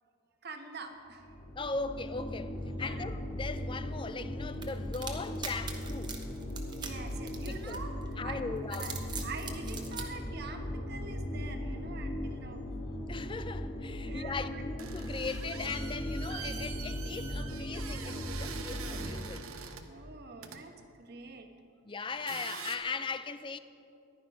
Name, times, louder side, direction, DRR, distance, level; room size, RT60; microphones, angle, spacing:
voice 1, 0.4-1.4 2.7-3.1 6.7-7.9 8.2-8.9 9.2-12.7 14.0-14.6 19.9-21.5, right 3 dB, 50° right, 1.2 m, -45 dB
sound 1, 1.1-19.1, left 1 dB, 55° left, 1.9 m, -38 dB
voice 2, 1.6-6.2 7.4-7.8 8.2-8.9 13.1-19.5 21.8-23.6, left 4 dB, 25° left, 0.4 m, -39 dB
sound 2, 4.6-8.1 8.6-10.1, right 5 dB, 20° right, 1.0 m, -42 dB
sound 3, 14.8-19.9 20.4-20.6 22.1-22.8, right 7 dB, 80° right, 1.0 m, -44 dB
14.5 x 11.0 x 5.3 m
head